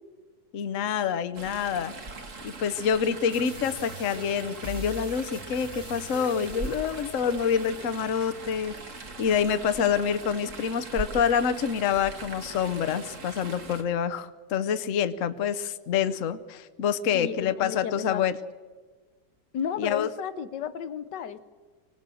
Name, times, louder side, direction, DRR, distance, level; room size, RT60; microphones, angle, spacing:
voice 1, 0.5-1.9 2.4-8.7 9.2-18.4 19.8-20.1, left 7 dB, 55° left, 11 dB, 1.1 m, -27 dB
Chatter / Stream, 1.3-13.8, right 3 dB, 45° right, 2.2 m, -41 dB
sound 1, 3.3-8.3, equal, 15° left, 4.2 m, -43 dB
voice 2, 17.1-18.3 19.5-21.4, left 8 dB, 80° left, 13 dB, 1.5 m, -33 dB
25.0 x 18.0 x 7.6 m, 1.4 s
omnidirectional pair, 1.8 m